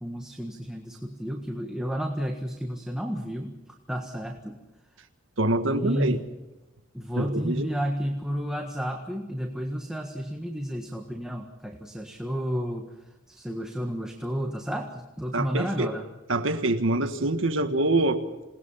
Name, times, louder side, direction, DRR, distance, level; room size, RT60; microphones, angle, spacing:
voice 1, 0.0-3.5 3.9-4.6 5.7-6.3 6.9-12.9 13.3-16.1 17.7-18.0, equal, 5° right, 2 dB, 1.6 m, -31 dB
voice 2, 5.4-6.2 7.2-7.7 15.3-15.9 16.3-18.4, right 2 dB, 70° right, 7 dB, 1.7 m, -25 dB
28.0 x 19.5 x 5.7 m, 1.0 s
head